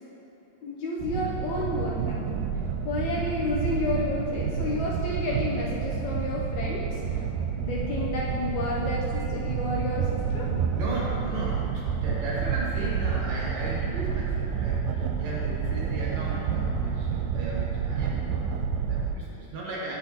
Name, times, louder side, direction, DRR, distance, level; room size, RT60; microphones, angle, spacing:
voice 1, 0.6-2.2 2.9-7.2 7.6-10.5, left 2 dB, 75° left, -4 dB, 1.8 m, -31 dB
sound 1, 1.0-19.1, right 6 dB, 85° right, 2.2 m, -29 dB
voice 2, 10.4-20.0, right 2 dB, 60° right, -4 dB, 2.1 m, -36 dB
16.5 x 6.4 x 2.9 m, 3.0 s
omnidirectional pair, 3.9 m